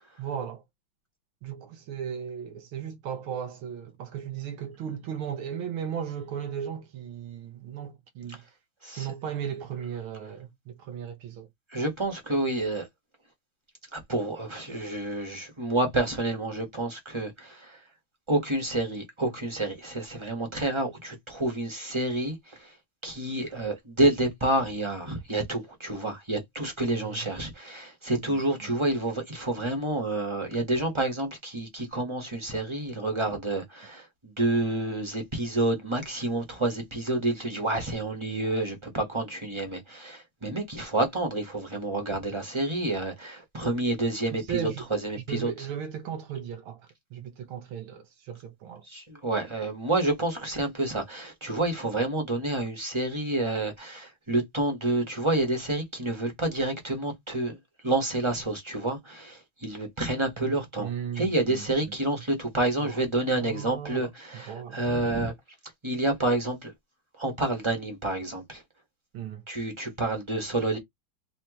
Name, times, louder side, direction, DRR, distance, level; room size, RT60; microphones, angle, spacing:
voice 1, 0.2-0.6 1.4-8.4 9.0-11.5 26.9-27.2 28.2-28.7 44.3-44.9 45.2-48.8 60.4-61.7 62.8-62.9 63.3-64.1 64.5-64.8 69.1-69.4, right 8 dB, 75° right, 1.8 m, -36 dB
voice 2, 11.7-12.9 13.9-17.8 18.3-22.7 23.0-45.7 48.9-57.6 57.8-65.3 65.8-66.7 67.2-68.6 69.5-70.8, right 2 dB, 15° right, 1.4 m, -29 dB
4.4 x 2.9 x 3.1 m
omnidirectional pair, 2.3 m